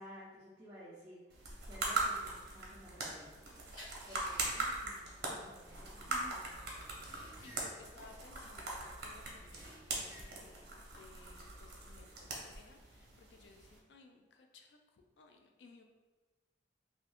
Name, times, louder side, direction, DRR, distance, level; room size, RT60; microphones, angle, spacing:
voice 1, 0.0-3.5 4.1-6.9, equal, 10° right, -11 dB, 0.6 m, -55 dB
sound 1, 1.3-13.8, right 3 dB, 60° right, 0.7 m, -41 dB
sound 2, 2.0-3.4 3.7-9.0 9.3-10.6 11.0-11.5, equal, 25° left, 1.1 m, -56 dB
voice 2, 3.7-4.0 6.1-6.4 7.4-10.7 11.0-15.8, left 3 dB, 70° left, 3 dB, 0.4 m, -59 dB
2.5 x 2.4 x 3.4 m, 1.2 s
head